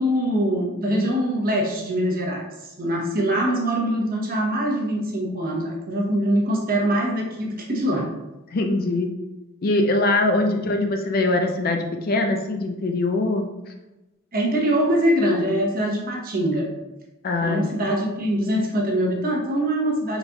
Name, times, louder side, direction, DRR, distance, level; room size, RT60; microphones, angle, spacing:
voice 1, 0.0-2.5 2.8-8.1 10.3-10.5 14.3-16.7 17.4-20.2, right 1 dB, 45° right, -1 dB, 0.8 m, -23 dB
voice 2, 8.5-9.1 9.6-13.5 17.2-17.9, left 2 dB, 45° left, 5 dB, 0.4 m, -22 dB
4.1 x 3.9 x 2.3 m, 1.0 s
head